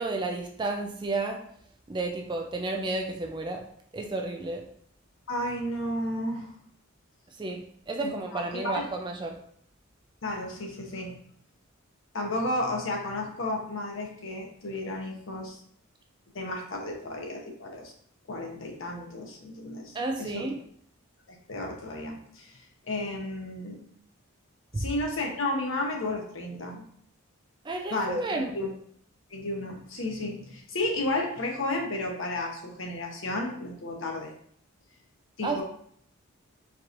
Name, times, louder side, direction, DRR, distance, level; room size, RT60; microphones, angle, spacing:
voice 1, 0.0-1.4 1.9-3.6 3.9-4.6 7.4-9.4 19.9-20.6 24.7-24.8 27.6-28.6 35.4-35.6, right 2 dB, 20° right, 3 dB, 0.3 m, -31 dB
voice 2, 5.3-6.5 8.3-8.8 10.2-11.1 12.1-15.6 16.3-17.9 18.3-20.5 21.3-22.6 22.9-23.8 24.8-26.9 27.9-28.7 29.3-34.3 35.4-35.6, left 1 dB, 65° left, 1 dB, 0.8 m, -32 dB
4.5 x 2.9 x 2.5 m, 0.64 s
head